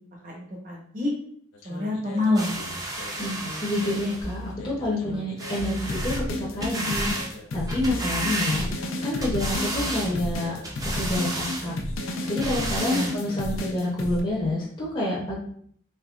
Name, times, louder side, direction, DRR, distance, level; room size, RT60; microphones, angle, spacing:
voice 1, 0.2-1.1 1.6-2.6 12.9-13.1, left 2 dB, 40° right, -2 dB, 0.9 m, -27 dB
sound 1, 1.5-4.1 4.6-14.2, left 1 dB, 85° left, 0.5 m, -33 dB
sound 2, 2.4-4.3 5.4-6.2 6.6-7.3 7.7-8.9 9.2-10.1 10.6-11.7 12.2-13.1 13.8-13.9, right 2 dB, 15° right, 0.5 m, -32 dB
voice 2, 3.2-7.1 7.5-8.7 9.0-10.5 10.9-11.7 12.3-15.4, left 1 dB, 25° left, -5 dB, 0.6 m, -28 dB
sound 3, 4.2-5.2 5.6-7.0 7.9-8.9 9.3-10.7 11.1-11.5, right 1 dB, 80° right, 0.8 m, -39 dB
3.5 x 3.2 x 2.3 m, 0.62 s
head